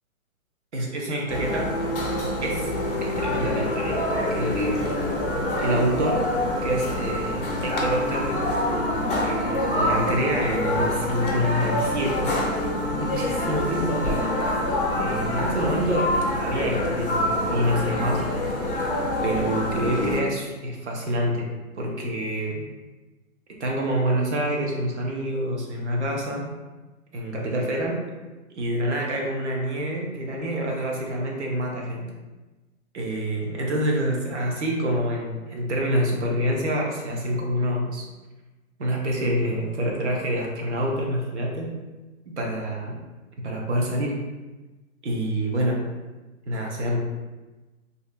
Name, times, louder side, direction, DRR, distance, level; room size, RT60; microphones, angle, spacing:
voice 1, 0.7-1.7 2.4-2.7 3.0-4.9 5.6-6.2 6.6-8.4 9.2-12.3 12.9-14.2 15.0-18.2 19.2-21.5 21.8-22.6 23.6-26.4 27.1-28.0 28.6-32.1 32.9-38.1 38.8-41.7 42.3-42.9 43.4-44.1 45.0-45.8 46.5-47.0, equal, 55° right, -1 dB, 0.6 m, -27 dB
sound 1, 1.3-20.2, left 1 dB, 40° left, 0.5 m, -26 dB
2.6 x 2.2 x 2.5 m, 1.2 s
hypercardioid pair, 165°, 43 cm